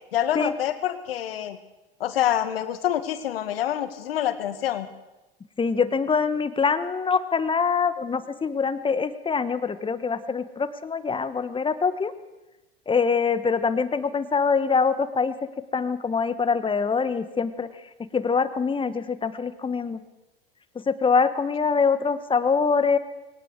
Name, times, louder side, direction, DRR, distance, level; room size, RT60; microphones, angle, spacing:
voice 1, 0.1-1.6 2.0-4.9, left 11 dB, 75° left, 10 dB, 2.0 m, -26 dB
voice 2, 5.6-12.1 12.9-15.3 15.7-17.7 18.1-20.0 20.9-23.0, left 5 dB, 15° left, 12 dB, 1.4 m, -24 dB
21.5 x 18.0 x 6.7 m, 1.0 s
hypercardioid pair, 90°, 30 cm